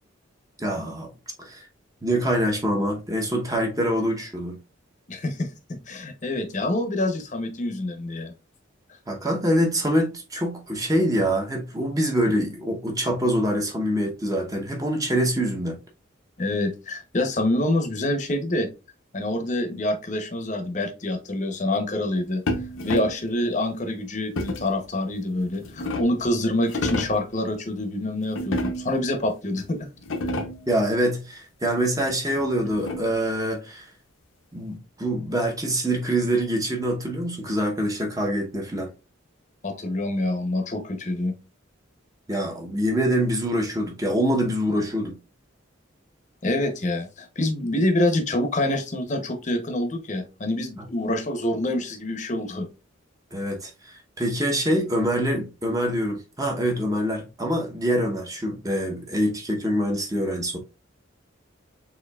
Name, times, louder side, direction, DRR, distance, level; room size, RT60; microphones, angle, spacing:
voice 1, 0.6-1.1 1.4-1.6 2.0-4.6 9.1-15.8 30.7-33.9 34.5-38.9 42.3-45.2 53.3-60.6, equal, 15° right, 0.8 m, -25 dB
voice 2, 5.1-8.3 16.4-18.7 19.1-22.4 22.8-29.9 39.6-41.3 46.4-52.7, left 1 dB, 35° left, 0.8 m, -26 dB
sound 1, 22.5-23.3 24.4-24.8 25.4-26.3 26.6-27.3 28.3-29.1 29.6-29.7 30.0-30.7 32.1-33.3, left 1 dB, 75° left, 0.7 m, -30 dB
6.7 x 2.7 x 2.3 m
head